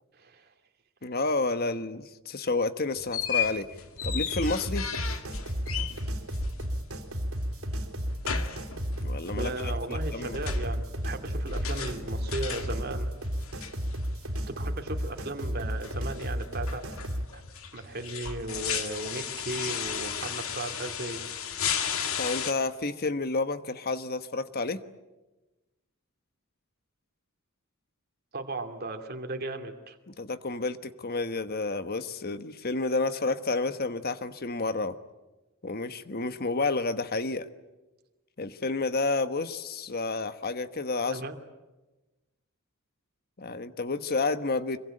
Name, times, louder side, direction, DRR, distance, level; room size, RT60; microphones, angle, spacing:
voice 1, 0.1-0.5 9.2-13.1 14.5-16.8 17.3-17.4 17.7-21.2 28.3-30.0 41.0-41.3, right 2 dB, 45° right, 5 dB, 2.6 m, -36 dB
voice 2, 1.0-3.7 4.0-4.9 9.0-10.4 22.2-24.8 30.1-35.0 35.6-37.5 38.4-41.2 43.4-44.8, left 3 dB, 45° left, 11 dB, 1.2 m, -30 dB
sound 1, 3.0-22.5, left 7 dB, 75° left, 2.2 m, -35 dB
sound 2, 4.0-17.3, equal, 90° right, 3.5 m, -33 dB
25.5 x 23.0 x 8.9 m, 1.1 s
head